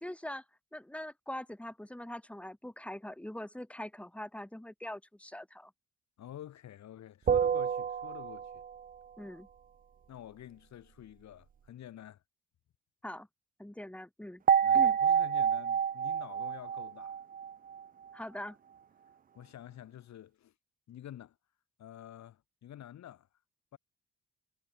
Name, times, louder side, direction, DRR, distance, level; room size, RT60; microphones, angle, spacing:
voice 1, 0.0-0.4 0.7-5.7 9.2-9.5 13.0-13.3 13.6-14.4 14.7-14.9 18.1-18.6, left 1 dB, 5° left, 2.8 m, -42 dB
voice 2, 6.2-8.6 10.1-12.2 14.6-17.2 19.3-20.5 20.9-21.4 21.8-23.3 23.7-23.8, left 11 dB, 65° left, 1.5 m, -49 dB
sound 1, 7.3-8.8 14.5-17.8, right 7 dB, 30° right, 0.4 m, -28 dB
cardioid pair, 90°, 30 cm